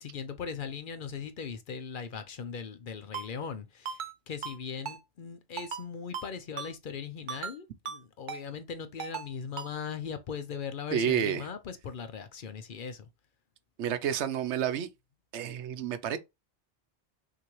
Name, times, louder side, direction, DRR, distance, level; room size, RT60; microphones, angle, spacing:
voice 1, 0.0-13.1, left 6 dB, 55° left, 0.7 m, -39 dB
Ringtone, 3.1-3.3 3.9-4.1 4.4-4.6 4.9-5.0 5.6-5.8 6.1-6.3 6.6-6.7 7.3-7.6 7.9-8.0 8.3-8.4 9.0-9.3 9.6-9.7, right 6 dB, 50° right, 0.8 m, -37 dB
voice 2, 10.9-11.5 13.8-14.9 15.3-16.2, right 9 dB, 90° right, 0.9 m, -30 dB
6.0 x 2.7 x 3.1 m
omnidirectional pair, 1.1 m